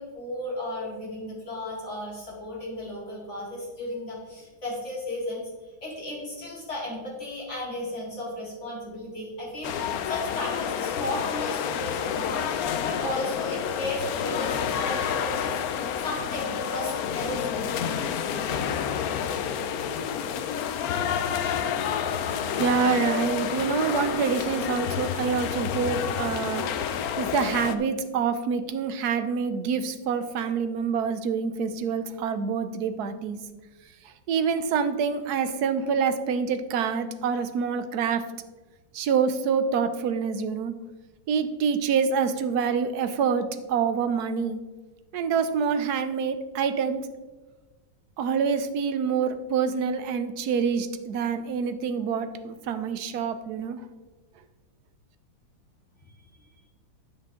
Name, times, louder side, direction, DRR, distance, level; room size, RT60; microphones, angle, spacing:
voice 1, 0.0-17.9 18.2-18.5, left 1 dB, 35° left, -6 dB, 3.6 m, -35 dB
sound 1, 9.6-27.8, left 8 dB, 65° left, 0.9 m, -29 dB
voice 2, 22.3-33.4 34.3-38.3 38.9-40.7 41.3-44.6 45.1-47.1 48.2-53.8, right 6 dB, 65° right, 10 dB, 1.2 m, -26 dB
10.0 x 8.5 x 3.7 m, 1.2 s
omnidirectional pair, 2.0 m